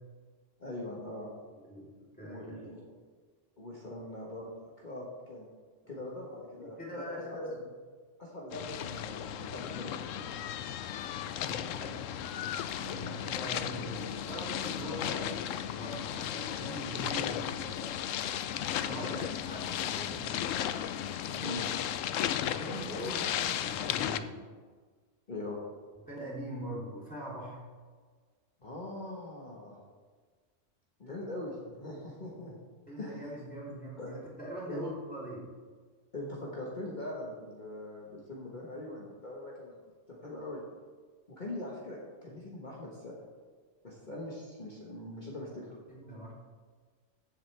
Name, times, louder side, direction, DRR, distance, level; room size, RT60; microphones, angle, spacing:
voice 1, 0.6-1.3 2.2-2.9 3.6-4.5 4.8-5.5 5.9-7.5 8.2-10.2 12.8-13.2 21.4-21.7 25.3-25.6 28.6-29.8 31.0-32.6 33.0-33.3 34.0-34.1 34.7-34.8 36.1-39.8 40.1-40.6 41.3-43.1 43.8-45.7, left 1 dB, 40° left, -4 dB, 1.5 m, -42 dB
voice 2, 1.5-1.9 2.2-2.6 6.6-7.6 11.2-11.9 12.8-15.3 15.8-17.9 18.8-20.3 21.2-21.7 22.5-24.3 26.0-27.6 32.9-35.4 45.9-46.3, equal, 5° left, -7 dB, 3.4 m, -42 dB
sound 1, 8.5-24.2, left 10 dB, 90° left, 0.9 m, -35 dB
14.5 x 7.5 x 3.4 m, 1.5 s
omnidirectional pair, 1.3 m